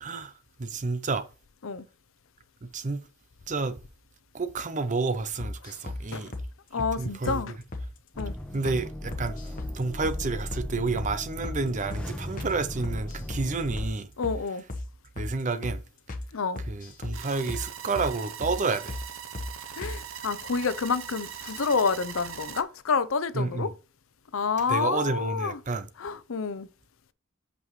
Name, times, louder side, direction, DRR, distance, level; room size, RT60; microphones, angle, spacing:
voice 1, 0.0-1.3 2.6-3.0 3.5-3.8 4.3-6.3 7.0-7.4 8.5-14.1 15.2-15.8 16.7-19.0 23.3-23.7 24.7-25.9, right 3 dB, 35° right, 0.6 m, -30 dB
sound 1, 5.4-6.0 6.3-6.5 6.8-6.9 7.3-7.4 7.7-7.9 8.2-8.3 8.6-8.8 9.1-9.7 10.0-10.2 10.5-10.7 11.0-11.1 11.4-11.6 11.9-12.1 12.4-12.5 12.8-13.5 13.8-13.9 14.2-14.4 14.7-14.9 15.2-15.3 15.6-15.8 16.1-16.3 16.6-17.2 17.5-17.6 17.9-18.1 18.4-18.6 18.9-19.0 19.3-19.5 19.8-20.0, left 2 dB, 40° left, 1.1 m, -35 dB
voice 2, 6.7-7.6 8.2-8.3 14.2-14.6 16.3-16.6 19.7-23.7 24.3-25.6 26.0-26.7, left 5 dB, 85° left, 0.7 m, -28 dB
sound 2, 8.1-13.9, left 1 dB, 5° left, 1.3 m, -38 dB
sound 3, 17.1-22.6, right 8 dB, 85° right, 0.8 m, -41 dB
8.1 x 5.5 x 3.2 m
head